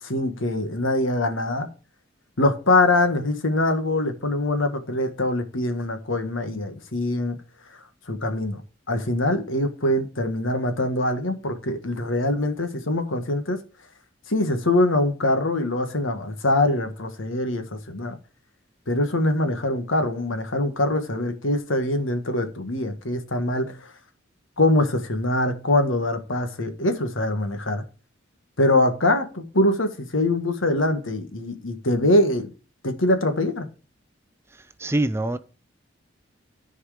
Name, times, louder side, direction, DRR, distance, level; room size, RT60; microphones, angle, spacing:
voice 1, 0.0-1.7 2.4-7.4 8.1-8.6 8.9-13.6 14.3-18.2 18.9-23.9 24.6-27.8 28.6-32.5 32.8-33.7, left 1 dB, 85° left, 1.5 m, -23 dB
voice 2, 34.5-35.4, right 1 dB, 15° right, 0.4 m, -25 dB
13.5 x 4.7 x 5.0 m
head